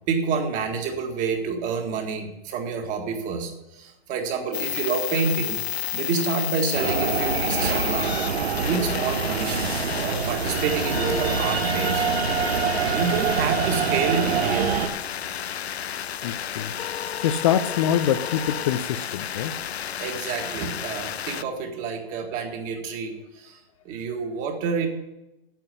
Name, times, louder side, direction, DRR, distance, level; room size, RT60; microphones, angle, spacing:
voice 1, 0.1-5.6 5.9-8.2 8.6-12.1 12.7-15.0 20.0-23.6 23.9-24.9, right 5 dB, 25° right, 3 dB, 1.8 m, -28 dB
sound 1, 4.5-21.4, left 9 dB, 90° left, 0.6 m, -31 dB
sound 2, 6.7-14.9, right 6 dB, 80° right, 1.1 m, -25 dB
voice 2, 16.2-16.7 17.2-19.5, left 10 dB, 35° left, 9 dB, 0.5 m, -25 dB
9.0 x 8.4 x 8.2 m, 0.94 s
hypercardioid pair, 140°, 31 cm